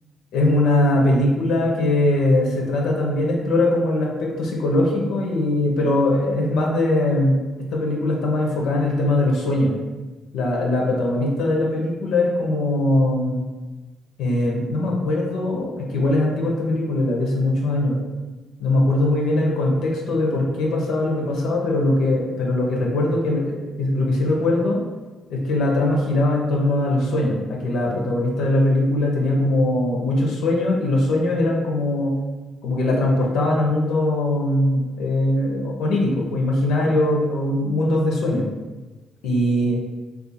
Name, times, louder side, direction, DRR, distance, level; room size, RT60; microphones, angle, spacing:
voice 1, 0.3-7.4 7.7-9.7 10.3-13.4 14.2-18.0 18.6-24.8 25.3-32.1 32.6-38.5 39.2-39.8, left 1 dB, 85° left, -1 dB, 0.6 m, -21 dB
2.5 x 2.4 x 4.1 m, 1.2 s
cardioid pair, 90°, 0 cm